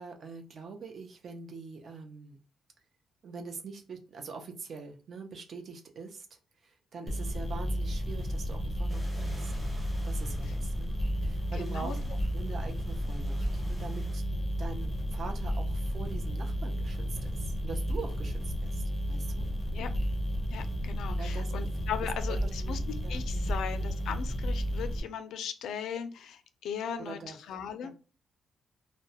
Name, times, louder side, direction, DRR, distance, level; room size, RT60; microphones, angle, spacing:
voice 1, 0.0-2.4 3.2-14.2 14.6-19.5 21.2-21.5 22.3-22.8 23.0-23.5 27.0-27.4 27.8-27.9, right 4 dB, 50° right, 4 dB, 0.5 m, -44 dB
sound 1, 7.1-25.0, equal, 10° left, 0.6 m, -32 dB
sound 2, 8.9-14.2, equal, 15° right, 0.9 m, -54 dB
voice 2, 11.6-12.0 19.7-19.9 20.5-22.8 23.1-27.9, left 8 dB, 85° left, 9 dB, 0.4 m, -38 dB
2.2 x 2.0 x 2.7 m, 0.35 s
cardioid pair, 150°, 0 cm